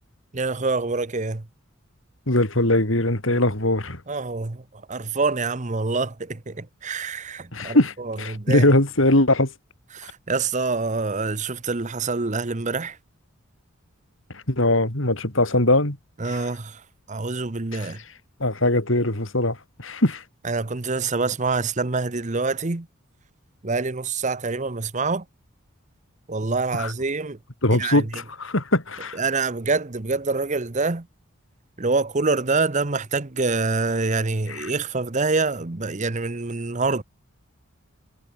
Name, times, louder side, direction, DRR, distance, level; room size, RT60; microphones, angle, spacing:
voice 1, 0.3-1.4 3.3-3.4 4.1-4.6 4.9-7.8 8.0-8.7 9.9-13.0 16.2-16.8 17.1-18.0 20.4-22.9 23.6-25.2 26.3-27.4 27.8-28.0 29.1-31.1 31.8-37.0, right 3 dB, 35° right, 0.9 m, -26 dB
voice 2, 2.3-4.0 7.5-9.5 14.3-16.0 16.2-16.5 17.7-17.9 18.4-20.2 26.7-26.9 27.6-29.2 34.5-34.7, left 1 dB, 60° left, 4.1 m, -21 dB
head